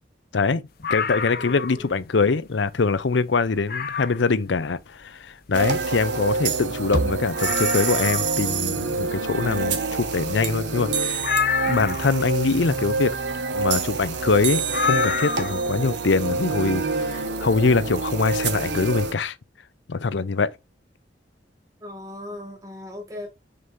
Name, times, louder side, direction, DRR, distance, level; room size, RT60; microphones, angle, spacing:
voice 1, 0.3-11.3 11.6-13.1 13.5-19.4 19.9-20.6, left 4 dB, 85° left, 0.6 m, -23 dB
sound 1, 0.8-1.9 2.3-2.4 2.9-3.0 3.7-4.3 6.1-6.2 6.3-6.4 6.9-7.0 7.3-8.4 11.2-12.2 14.7-15.7 17.0-17.1, left 7 dB, 55° left, 0.8 m, -27 dB
voice 2, 1.3-1.9 21.8-23.3, left 1 dB, 20° right, 1.8 m, -38 dB
sound 2, 5.5-19.1, right 4 dB, 75° right, 1.3 m, -26 dB
6.6 x 5.3 x 2.7 m
head